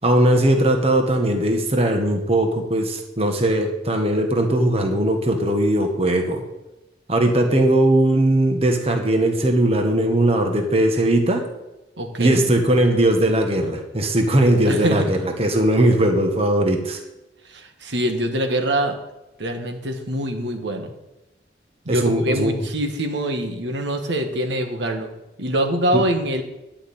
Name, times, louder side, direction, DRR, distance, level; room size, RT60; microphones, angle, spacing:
voice 1, 0.0-6.4 7.1-11.5 12.2-17.0 21.9-22.6 25.9-26.0, right 1 dB, 35° right, 4 dB, 1.4 m, -19 dB
voice 2, 12.0-12.4 14.7-15.2 17.5-19.0 19.4-20.9 21.8-25.1 25.4-26.4, right 1 dB, 80° right, 5 dB, 1.6 m, -24 dB
11.5 x 5.9 x 8.6 m, 0.99 s
head